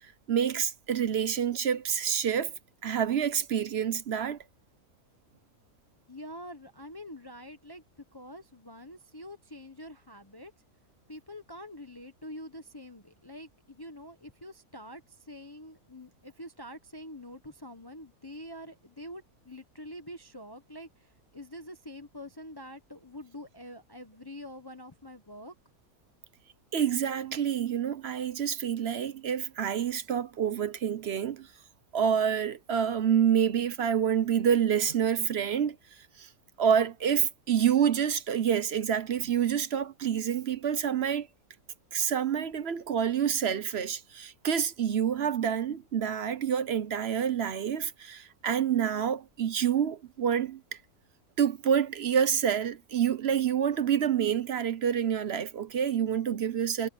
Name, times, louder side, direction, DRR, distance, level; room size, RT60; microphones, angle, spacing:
voice 1, 0.3-2.5 2.8-4.4 26.7-31.5 31.9-35.8 36.2-36.3 36.6-41.3 41.9-50.6 51.4-56.9, right 8 dB, 50° right, 0.9 m, -27 dB
voice 2, 6.1-10.5 11.1-25.5, left 1 dB, 15° left, 1.1 m, -46 dB
omnidirectional pair, 1.6 m